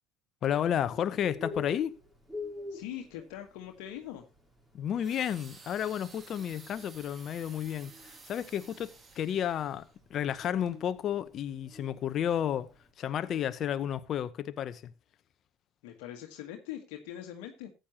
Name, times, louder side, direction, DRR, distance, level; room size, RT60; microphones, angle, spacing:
voice 1, 0.4-1.9 4.7-12.7 13.0-14.9, left 9 dB, 45° left, 0.8 m, -32 dB
Bird, 0.7-12.9, left 3 dB, 10° right, 4.6 m, -46 dB
voice 2, 2.7-4.3 15.8-17.7, left 11 dB, 70° left, 1.4 m, -42 dB
sound 1, 5.0-10.0 10.6-10.8, right 4 dB, 30° right, 1.9 m, -53 dB
14.5 x 9.0 x 2.9 m
hypercardioid pair, 75°, 0 cm